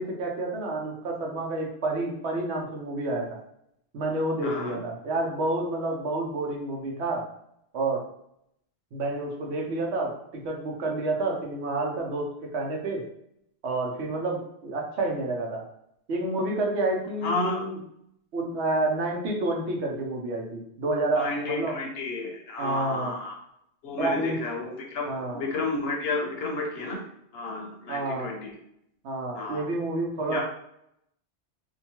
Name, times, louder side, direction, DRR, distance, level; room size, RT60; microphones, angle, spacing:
voice 1, 0.0-3.3 3.9-7.2 7.7-8.0 8.9-13.0 13.6-15.6 16.1-17.8 18.3-21.8 22.6-23.1 24.0-24.4 25.0-25.4 27.9-28.3 29.0-30.4, right 2 dB, 80° right, 0 dB, 1.0 m, -29 dB
voice 2, 4.4-4.8 17.2-17.6 21.1-23.4 23.8-27.0 27.3-28.5 29.3-29.7 30.3-30.4, left 2 dB, 70° left, 1 dB, 0.8 m, -31 dB
2.7 x 2.2 x 2.8 m, 0.76 s
omnidirectional pair, 1.1 m